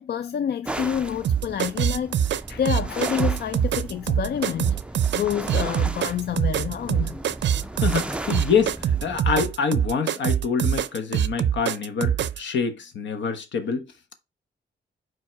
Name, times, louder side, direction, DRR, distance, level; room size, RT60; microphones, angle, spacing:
voice 1, 0.0-4.8 5.1-7.2 7.6-7.7, left 9 dB, 60° left, 0.4 m, -28 dB
sound 1, 0.6-9.2, right 2 dB, 5° right, 0.4 m, -36 dB
sound 2, 1.2-12.4, right 9 dB, 75° right, 0.5 m, -24 dB
voice 2, 7.8-8.7 9.0-13.8, left 6 dB, 80° left, 1.2 m, -26 dB
5.6 x 4.6 x 4.5 m
wide cardioid pair, 180°, 19 cm